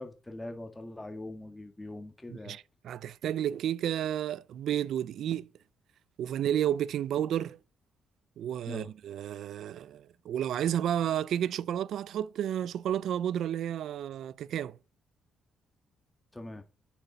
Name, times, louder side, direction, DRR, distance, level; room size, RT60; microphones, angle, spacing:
voice 1, 0.0-2.6 8.7-8.9 16.3-16.6, left 2 dB, 15° left, 1.8 m, -42 dB
voice 2, 2.3-5.5 6.2-7.6 8.4-14.8, right 10 dB, 75° right, 0.4 m, -31 dB
10.0 x 6.8 x 5.5 m
cardioid pair, 90°, 0 cm